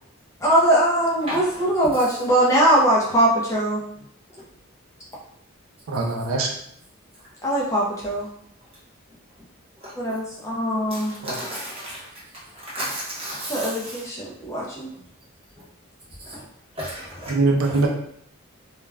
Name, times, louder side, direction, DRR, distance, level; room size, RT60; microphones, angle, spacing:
voice 1, 0.4-3.8 7.4-8.3 10.0-11.1 13.5-14.9, right 1 dB, 15° left, -5 dB, 0.5 m, -21 dB
voice 2, 5.9-6.5 11.2-11.3 17.3-17.9, right 3 dB, 80° right, 1 dB, 0.5 m, -22 dB
voice 3, 11.2-12.0 12.7-13.7 16.3-16.4 16.8-17.3, equal, 25° right, -7 dB, 0.9 m, -32 dB
2.3 x 2.1 x 3.3 m, 0.69 s
head